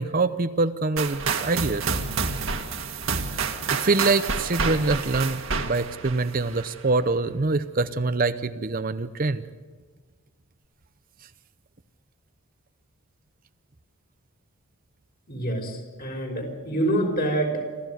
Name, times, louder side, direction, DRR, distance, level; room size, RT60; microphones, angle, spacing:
voice 1, 0.0-1.8 3.3-9.4, right 3 dB, 40° right, 11 dB, 0.7 m, -25 dB
sound 1, 1.0-6.8, right 5 dB, 65° right, 1.9 m, -29 dB
voice 2, 15.3-17.5, right 1 dB, 45° left, 2 dB, 5.3 m, -26 dB
27.0 x 14.5 x 9.3 m, 1.5 s
head